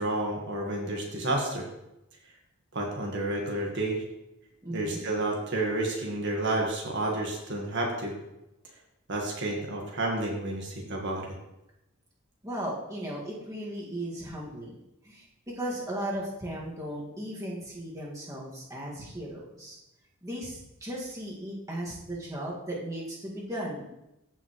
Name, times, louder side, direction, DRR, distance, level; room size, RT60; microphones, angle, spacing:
voice 1, 0.0-1.7 2.7-4.0 4.7-8.1 9.1-11.3, right 2 dB, 60° right, 0 dB, 1.6 m, -30 dB
voice 2, 4.6-5.0 12.4-14.8 15.0-15.3 15.5-19.8 20.2-23.9, right 1 dB, 15° right, -5 dB, 2.0 m, -36 dB
14.5 x 5.7 x 3.2 m, 0.90 s
head